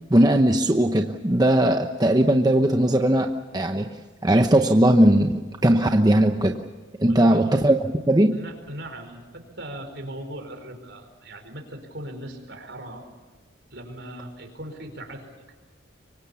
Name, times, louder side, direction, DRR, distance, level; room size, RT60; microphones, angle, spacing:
voice 1, 0.1-3.9 4.2-6.6 7.0-7.8 8.0-8.4, right 1 dB, 20° right, 5 dB, 0.9 m, -19 dB
voice 2, 7.0-7.5 8.3-13.1 13.7-15.3, right 1 dB, 60° right, 6 dB, 4.9 m, -39 dB
25.0 x 24.0 x 7.1 m, 1.4 s
head